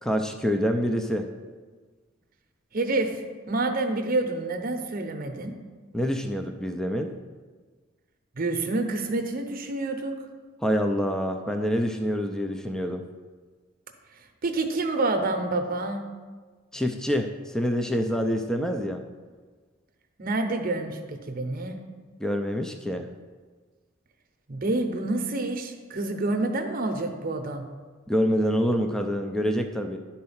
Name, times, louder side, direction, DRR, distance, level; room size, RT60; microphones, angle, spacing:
voice 1, 0.0-1.3 5.9-7.1 10.6-13.0 16.7-19.0 22.2-23.1 28.1-30.0, equal, 5° left, 5 dB, 0.4 m, -26 dB
voice 2, 2.7-3.2 3.5-5.5 8.4-10.1 14.4-16.0 20.2-21.8 24.5-27.6, right 2 dB, 50° right, 5 dB, 0.8 m, -28 dB
10.5 x 4.3 x 5.6 m, 1.4 s
head